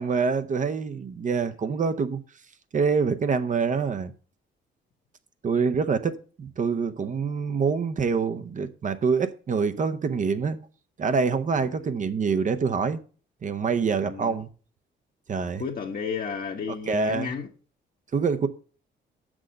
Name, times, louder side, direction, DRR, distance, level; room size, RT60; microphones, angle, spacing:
voice 1, 0.0-2.2 2.7-4.1 5.4-10.6 11.0-13.0 13.4-14.5 15.3-15.6 16.9-17.3 18.1-18.5, right 5 dB, 40° right, 0.7 m, -25 dB
voice 2, 11.5-11.9 13.9-14.4 15.4-17.5, left 6 dB, 45° left, 1.1 m, -33 dB
6.6 x 6.2 x 6.3 m
cardioid pair, 90°, 20 cm